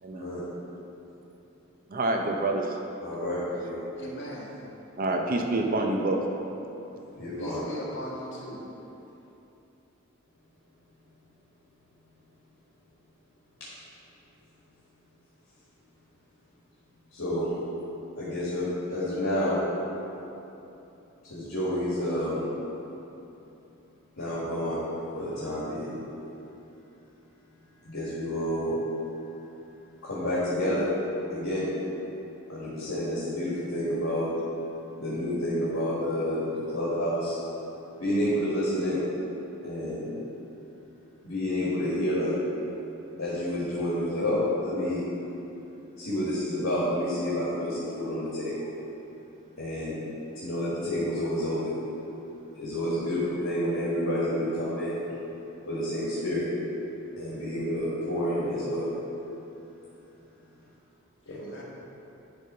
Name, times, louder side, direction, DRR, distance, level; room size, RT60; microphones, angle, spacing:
voice 1, 1.9-2.8 5.0-6.3, right 2 dB, 45° right, 2 dB, 0.6 m, -27 dB
voice 2, 3.0-3.7 7.2-7.6 17.1-17.5 18.1-19.6 21.3-22.4 24.1-24.8 25.1-25.9 27.8-28.8 30.0-30.9 31.3-31.7 32.5-34.3 35.0-37.4 38.0-39.0 39.6-40.1 41.2-42.3 43.2-45.0 46.0-48.7 49.6-50.0 50.3-51.7 52.5-55.0 55.6-56.5 57.1-58.9 61.3-61.4, left 1 dB, 75° left, -10 dB, 1.7 m, -29 dB
voice 3, 3.9-4.5 7.4-8.7 61.3-61.6, equal, 60° left, -5 dB, 1.6 m, -39 dB
10.5 x 3.5 x 5.5 m, 3.0 s
head